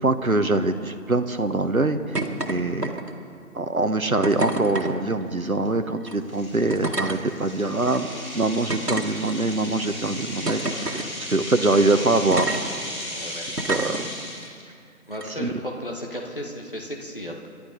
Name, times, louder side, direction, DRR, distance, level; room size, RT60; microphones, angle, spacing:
voice 1, 0.0-2.2 2.5-3.0 3.5-8.1 8.3-11.0 11.3-12.5 13.7-14.0 15.4-15.5, right 2 dB, 65° right, 9 dB, 1.2 m, -23 dB
sound 1, 2.1-2.5 2.8-3.3 4.2-4.9 6.0-6.1 6.7-7.2 7.9-8.0 8.7-9.6 10.5-11.1 12.3-12.6 13.6-14.0 15.1-15.2, right 2 dB, 90° right, 2.0 m, -28 dB
sound 2, 5.0-5.2 5.7-5.8 6.3-14.6, left 1 dB, 60° left, 4.5 m, -35 dB
voice 2, 11.7-12.1 13.1-13.5 15.1-17.5, equal, 35° left, 0 dB, 1.5 m, -35 dB
28.0 x 11.5 x 3.9 m, 2.3 s
figure-of-eight pair, 170°, 46 cm